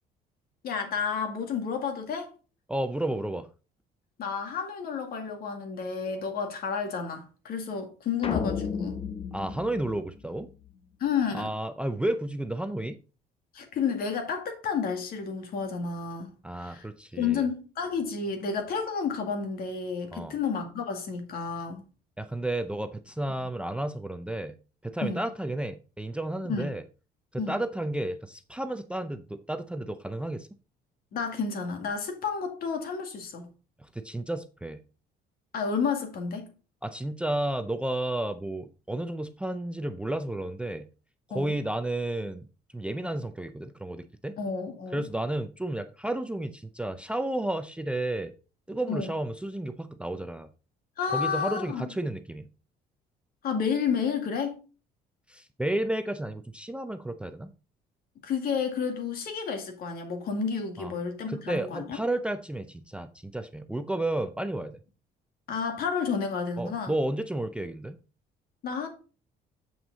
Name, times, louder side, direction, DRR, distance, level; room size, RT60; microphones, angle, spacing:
voice 1, 0.6-2.3 4.2-9.0 11.0-11.5 13.5-16.3 16.6-16.9 17.1-21.8 25.0-25.3 26.5-26.7 27.4-27.6 31.1-33.5 35.5-36.5 41.3-41.5 44.4-45.0 48.9-49.1 51.0-51.9 53.4-54.6 58.2-62.0 65.5-66.9 68.6-68.9, left 6 dB, 60° left, 2.1 m, -31 dB
voice 2, 2.7-3.5 9.3-10.5 11.3-13.0 16.4-17.4 20.1-20.4 22.2-24.6 24.8-26.8 27.3-30.5 33.8-34.8 36.8-40.9 41.3-42.5 42.7-44.4 44.9-48.3 48.7-50.5 51.1-52.4 55.3-57.5 60.8-60.9 61.3-64.8 66.6-68.0, right 1 dB, 5° right, 0.5 m, -32 dB
sound 1, 8.2-10.7, left 6 dB, 35° left, 1.0 m, -33 dB
7.3 x 5.9 x 4.0 m
cardioid pair, 110°, 17 cm